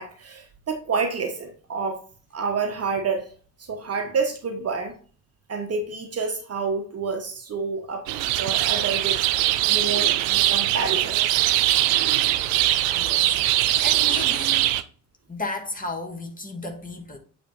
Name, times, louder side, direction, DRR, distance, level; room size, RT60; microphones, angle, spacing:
voice 1, 0.0-2.0 2.3-3.3 3.6-4.9 5.5-8.1 8.4-11.2, right 4 dB, 30° right, 1.1 m, -29 dB
sparrows spring street, 8.1-14.8, right 14 dB, 55° right, 0.6 m, -21 dB
voice 2, 12.9-14.7 15.3-17.2, left 2 dB, 15° left, 1.6 m, -34 dB
8.3 x 3.4 x 4.0 m
figure-of-eight pair, 50°, 49 cm